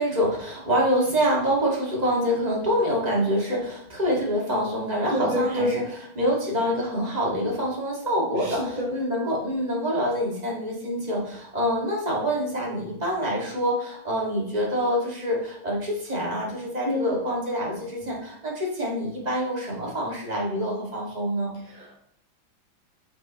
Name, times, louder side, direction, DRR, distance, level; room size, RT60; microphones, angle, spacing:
voice 1, 0.0-5.8 6.2-21.5, equal, 20° right, -3 dB, 2.0 m, -26 dB
voice 2, 5.1-5.9 8.4-9.0 16.8-17.2 21.6-22.0, left 1 dB, 50° right, 0 dB, 0.6 m, -28 dB
7.1 x 6.2 x 3.0 m, 0.72 s
omnidirectional pair, 2.2 m